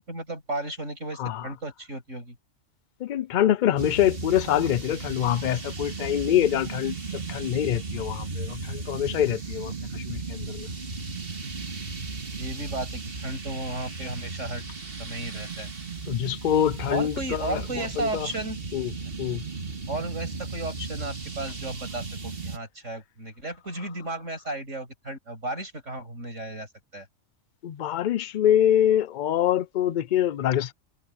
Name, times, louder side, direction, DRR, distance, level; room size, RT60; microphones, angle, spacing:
voice 1, 0.0-2.4 12.3-14.6 15.0-15.7 16.9-18.6 19.9-26.7 26.9-27.1, right 2 dB, 70° right, 7.2 m, -34 dB
voice 2, 1.2-1.5 3.0-10.7 16.1-18.3 18.7-18.9 19.2-19.4 27.6-30.7, left 11 dB, 60° left, 0.5 m, -25 dB
sound 1, 3.8-22.6, right 4 dB, 45° right, 2.1 m, -35 dB
omnidirectional pair, 1.3 m